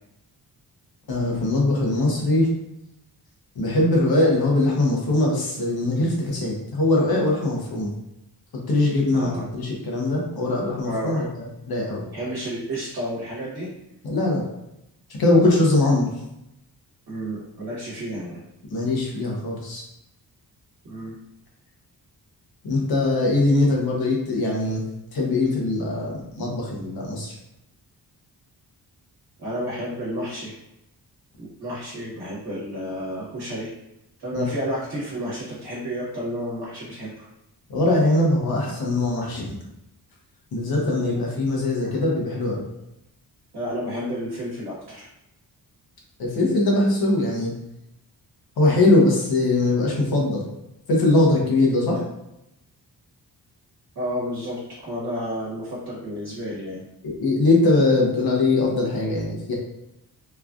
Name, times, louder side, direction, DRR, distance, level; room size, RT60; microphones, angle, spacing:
voice 1, 1.1-2.5 3.5-7.9 8.5-12.0 14.0-14.4 15.2-16.1 18.7-19.8 22.6-24.8 25.1-27.3 34.3-34.4 37.7-39.6 40.5-42.6 46.2-47.5 48.6-50.4 50.9-52.0 57.0-59.5, left 2 dB, 70° left, -2 dB, 0.9 m, -21 dB
voice 2, 10.8-11.2 12.1-13.7 17.1-18.4 20.8-21.1 29.4-30.5 31.4-33.7 34.2-37.3 40.9-41.2 41.8-42.0 43.5-45.1 53.9-56.8, equal, 70° right, -6 dB, 1.1 m, -31 dB
3.1 x 2.4 x 2.4 m, 0.86 s
wide cardioid pair, 135°, 38 cm